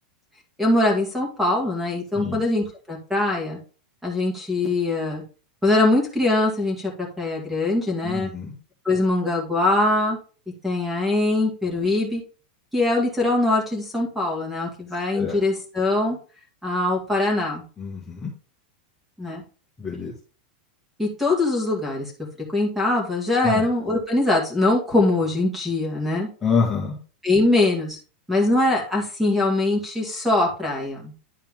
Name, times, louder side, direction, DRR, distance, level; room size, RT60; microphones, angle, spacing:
voice 1, 0.6-3.6 4.0-5.2 5.6-8.3 8.8-10.2 10.6-12.2 12.7-16.2 16.6-17.6 19.2-19.4 21.0-22.1 22.5-26.3 27.2-28.0 28.3-31.1, left 2 dB, 5° right, 0 dB, 2.3 m, -22 dB
voice 2, 8.0-8.5 15.1-15.4 17.8-18.3 19.8-20.1 23.4-23.6 26.4-27.0, left 5 dB, 10° left, -5 dB, 1.8 m, -26 dB
11.0 x 4.3 x 3.8 m, 0.37 s
supercardioid pair, 165°, 5 cm